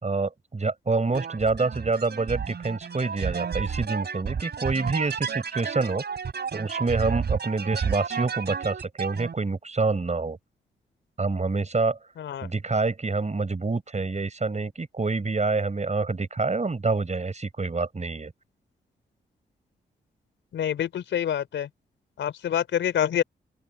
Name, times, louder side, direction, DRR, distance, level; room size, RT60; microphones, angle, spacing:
voice 1, 0.0-6.0 6.5-10.4 11.2-12.0 12.4-18.3, right 3 dB, 35° right, 5.6 m, -27 dB
sound 1, 1.1-9.3, right 6 dB, 60° right, 4.8 m, -31 dB
voice 2, 12.2-12.5 20.5-21.7 22.2-23.2, left 9 dB, 75° left, 3.9 m, -26 dB
open air
hypercardioid pair, 40°, 19 cm